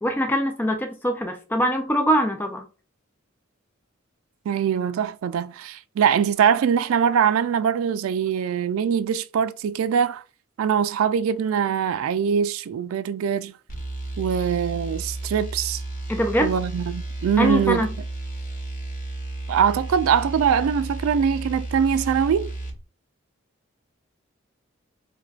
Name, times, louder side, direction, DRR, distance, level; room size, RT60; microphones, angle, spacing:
voice 1, 0.0-2.6 16.1-16.5 17.4-17.9, equal, 10° left, 0.4 m, -23 dB
voice 2, 4.5-10.2 10.6-13.5 14.2-15.8 16.4-17.9 19.5-22.5, right 7 dB, 90° right, 0.3 m, -22 dB
sound 1, 13.7-22.8, right 2 dB, 40° left, 0.8 m, -33 dB
4.4 x 2.2 x 2.4 m
head